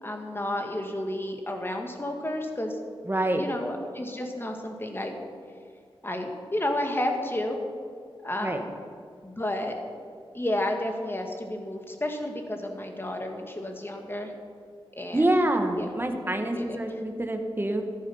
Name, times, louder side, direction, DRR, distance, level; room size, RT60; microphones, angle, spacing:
voice 1, 0.0-2.8 3.4-5.2 6.0-7.6 8.2-8.7 9.2-9.8 10.3-14.3 14.9-15.2 15.8-15.9 16.5-16.8, left 1 dB, 25° left, 3 dB, 1.9 m, -31 dB
voice 2, 3.1-3.4 8.4-8.6 15.1-17.8, right 1 dB, 20° right, 4 dB, 1.4 m, -26 dB
14.0 x 11.0 x 5.6 m, 2.1 s
wide cardioid pair, 70°, 10 cm